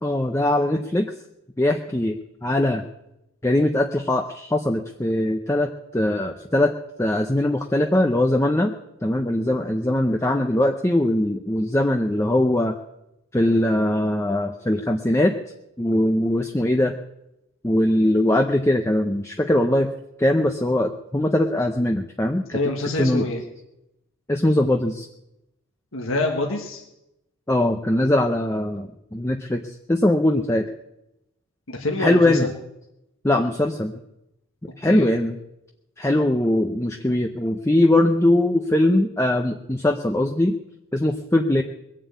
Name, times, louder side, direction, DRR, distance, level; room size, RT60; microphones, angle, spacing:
voice 1, 0.0-1.1 1.6-2.8 3.4-6.7 7.0-8.8 9.0-12.8 13.3-15.3 15.8-16.9 17.6-19.9 20.2-22.6 23.0-23.2 24.3-25.1 27.5-30.7 32.0-32.5 33.2-33.9 34.8-35.4 36.0-40.5 40.9-41.6, left 1 dB, 15° left, 4 dB, 0.6 m, -21 dB
voice 2, 22.5-23.4 25.9-26.8 31.7-32.5 34.8-35.1 36.0-36.2, left 2 dB, 75° left, 1 dB, 1.6 m, -26 dB
21.5 x 7.6 x 8.3 m, 0.89 s
head